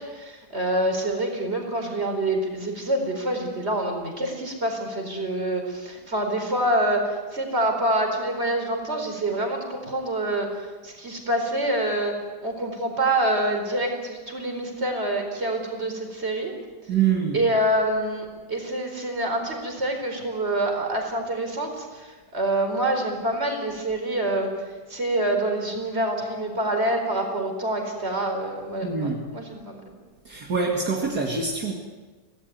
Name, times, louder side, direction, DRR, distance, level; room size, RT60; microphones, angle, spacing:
voice 1, 0.0-12.1 12.4-16.5 17.3-29.8, right 1 dB, 35° right, 3 dB, 4.9 m, -26 dB
voice 2, 16.9-17.4 28.8-29.2 30.2-31.7, right 5 dB, 60° right, -1 dB, 2.9 m, -25 dB
26.0 x 18.0 x 9.5 m, 1.4 s
omnidirectional pair, 1.9 m